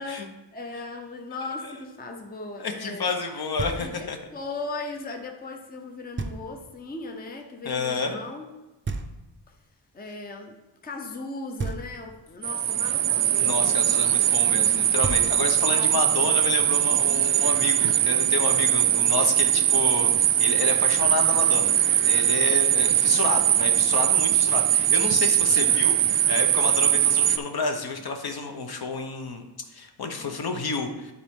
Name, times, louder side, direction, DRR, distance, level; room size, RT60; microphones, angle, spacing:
voice 1, 0.0-3.1 3.7-8.5 9.9-10.6 10.8-14.6 15.7-15.9 22.7-22.9 25.6-25.8 30.1-30.4, left 3 dB, 20° left, 3 dB, 0.6 m, -38 dB
voice 2, 2.6-4.2 7.6-8.2 13.4-21.8 22.0-29.4 29.7-31.1, left 4 dB, 55° left, 5 dB, 0.9 m, -30 dB
Knock, 3.6-4.2 6.2-6.8 8.8-9.7 11.6-12.4 14.7-14.8 15.0-15.8, right 3 dB, 25° right, 0.5 m, -34 dB
sound 1, 12.4-27.4, right 11 dB, 80° right, 0.5 m, -21 dB
12.0 x 4.1 x 3.6 m, 1.1 s
wide cardioid pair, 160°, 46 cm